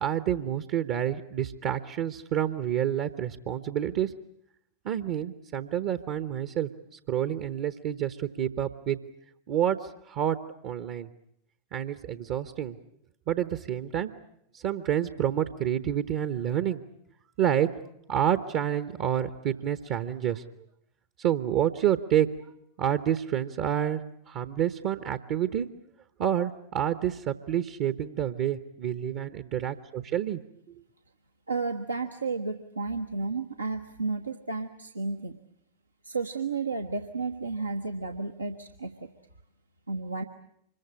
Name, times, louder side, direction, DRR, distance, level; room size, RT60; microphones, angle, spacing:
voice 1, 0.0-4.1 4.8-9.0 9.5-10.4 10.6-11.1 11.7-12.8 13.3-14.1 14.5-16.8 17.4-17.7 18.1-20.4 21.2-22.3 22.8-25.7 26.2-30.4, right 10 dB, 45° right, 11 dB, 1.0 m, -28 dB
voice 2, 31.5-35.4 36.0-38.9 39.9-40.2, right 4 dB, 80° right, 4 dB, 1.1 m, -32 dB
25.5 x 22.0 x 8.6 m, 0.75 s
figure-of-eight pair, 90°, 0 cm